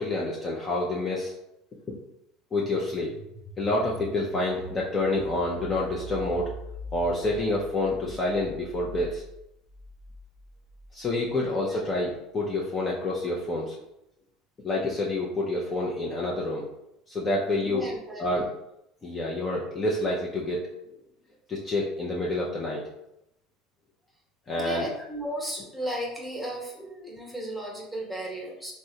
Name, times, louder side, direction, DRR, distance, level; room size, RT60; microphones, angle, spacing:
voice 1, 0.0-1.3 1.9-2.0 2.5-3.1 3.6-6.5 6.9-9.2 10.9-13.8 14.6-16.7 17.1-17.9 18.2-18.5 19.0-20.7 21.5-22.8 24.5-24.9, left 2 dB, 30° left, -4 dB, 0.6 m, -28 dB
sound 1, 2.6-11.3, equal, 30° right, 0.6 m, -43 dB
voice 2, 11.4-11.8 17.5-18.2 24.6-28.7, equal, ahead, -3 dB, 1.1 m, -35 dB
3.4 x 2.1 x 2.7 m, 0.83 s
hypercardioid pair, 85°, 0 cm